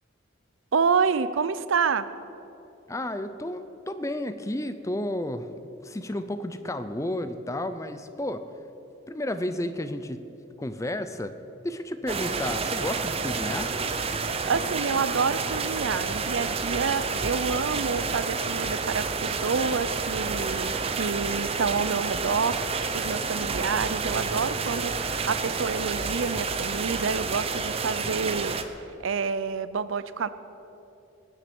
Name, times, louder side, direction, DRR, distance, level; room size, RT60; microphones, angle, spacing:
voice 1, 0.7-2.1 14.5-28.6 29.0-30.3, right 5 dB, 70° right, 14 dB, 0.5 m, -28 dB
voice 2, 2.9-5.5 5.8-8.4 9.1-10.2 10.6-11.4 11.6-13.7, left 1 dB, 15° left, 10 dB, 0.5 m, -32 dB
sound 1, 12.1-28.6, right 4 dB, 30° right, 0.6 m, -29 dB
19.0 x 7.5 x 7.0 m, 2.9 s
head